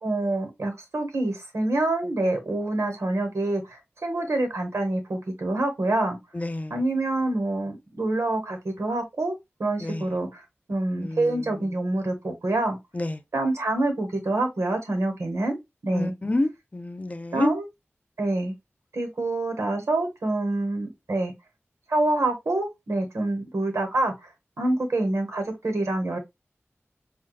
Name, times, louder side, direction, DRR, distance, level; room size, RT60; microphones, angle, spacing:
voice 1, 0.0-6.2 6.7-9.3 9.6-10.4 10.7-12.8 13.3-15.6 15.8-16.1 17.3-17.7 18.2-18.5 18.9-21.3 21.9-24.3 24.6-26.2, right 2 dB, 85° right, 1.0 m, -26 dB
voice 2, 6.3-6.8 9.8-10.1 11.0-11.4 12.9-13.2 15.9-17.5, left 2 dB, 30° left, 0.6 m, -29 dB
4.6 x 2.2 x 2.3 m
wide cardioid pair, 50°, 5 cm